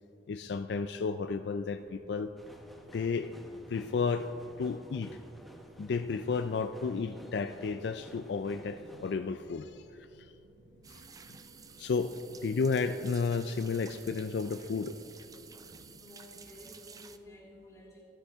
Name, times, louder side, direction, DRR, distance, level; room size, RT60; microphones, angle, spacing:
voice 1, 0.3-2.3 2.9-3.3 3.7-4.3 4.6-5.2 5.8-10.3 10.9-11.0 11.3-11.4 11.8-12.1 12.4-15.0, left 4 dB, 65° left, 9 dB, 0.4 m, -32 dB
sound 1, 1.7-16.0, right 1 dB, 75° right, 1.0 m, -59 dB
sound 2, 2.4-9.1, equal, ahead, 0.8 m, -53 dB
sound 3, 10.8-17.2, right 6 dB, 20° right, 0.4 m, -52 dB
voice 2, 15.9-18.0, left 1 dB, 20° left, -4 dB, 2.5 m, -52 dB
14.0 x 11.5 x 3.6 m, 2.9 s
head